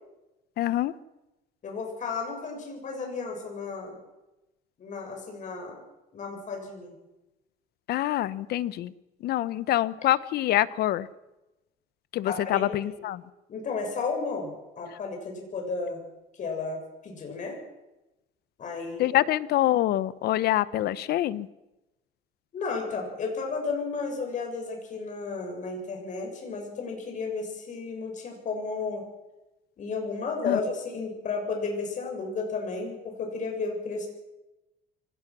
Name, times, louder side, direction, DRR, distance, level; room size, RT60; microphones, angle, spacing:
voice 1, 0.6-0.9 7.9-8.9 9.2-11.1 12.1-13.2 19.0-21.5 30.4-30.6, left 14 dB, 70° left, 18 dB, 0.9 m, -25 dB
voice 2, 1.6-4.0 4.8-5.8 6.1-6.9 12.3-12.9 13.5-16.0 16.4-17.6 18.6-19.2 22.5-29.0 29.8-34.1, left 4 dB, 45° left, 2 dB, 7.0 m, -33 dB
24.5 x 18.0 x 6.2 m, 1.0 s
cardioid pair, 110°, 17 cm